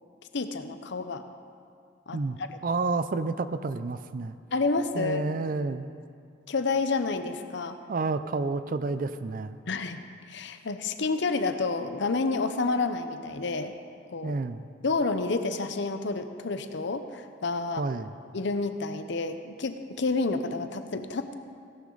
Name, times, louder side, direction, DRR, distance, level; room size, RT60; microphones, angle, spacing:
voice 1, 0.3-1.2 2.1-2.5 4.5-5.2 6.5-7.8 9.7-10.0 10.3-13.7 14.1-14.4 14.8-17.8 18.3-21.3, left 3 dB, 65° left, 9 dB, 0.7 m, -29 dB
voice 2, 2.6-4.4 4.9-5.9 7.9-9.6 14.2-14.7 17.8-18.1, right 3 dB, 45° right, 12 dB, 0.5 m, -30 dB
16.5 x 11.5 x 3.9 m, 2.3 s
head